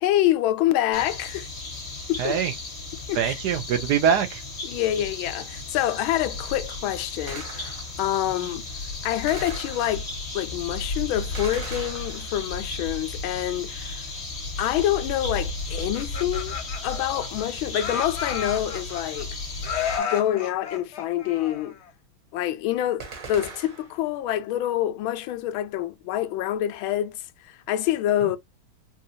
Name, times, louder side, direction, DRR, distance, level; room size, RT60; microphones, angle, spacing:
voice 1, 0.0-1.5 2.1-2.4 3.1-3.3 4.6-8.7 9.0-10.1 10.3-14.1 14.6-16.5 16.8-19.4 20.0-21.8 22.3-28.4, left 13 dB, 85° left, 1.4 m, -26 dB
sound 1, 0.9-20.0, left 2 dB, 35° left, 1.8 m, -34 dB
voice 2, 2.2-2.5 3.1-4.4 28.2-28.4, right 8 dB, 70° right, 1.0 m, -23 dB
Gunshot gunfire, 7.3-8.1 9.3-10.3 11.3-12.6 23.0-24.1, right 4 dB, 50° right, 1.5 m, -40 dB
Laughter, 15.8-17.4 17.8-19.2 19.6-21.9, left 7 dB, 65° left, 0.6 m, -32 dB
4.2 x 2.3 x 2.6 m
omnidirectional pair, 2.2 m